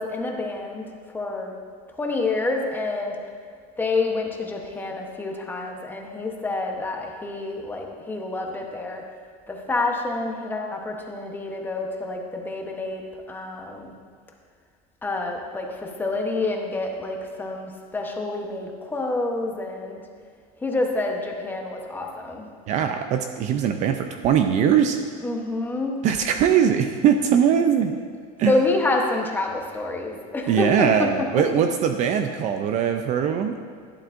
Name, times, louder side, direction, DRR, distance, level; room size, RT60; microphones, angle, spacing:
voice 1, 0.0-1.6 2.0-3.2 3.8-9.0 9.5-13.9 15.0-20.0 20.6-22.5 25.2-26.0 28.5-31.3, left 2 dB, 10° left, 1 dB, 0.9 m, -28 dB
voice 2, 22.7-25.0 26.0-27.9 28.4-28.6 30.5-33.6, right 8 dB, 40° right, 6 dB, 0.4 m, -21 dB
11.5 x 11.0 x 2.5 m, 2.1 s
cardioid pair, 160°, 19 cm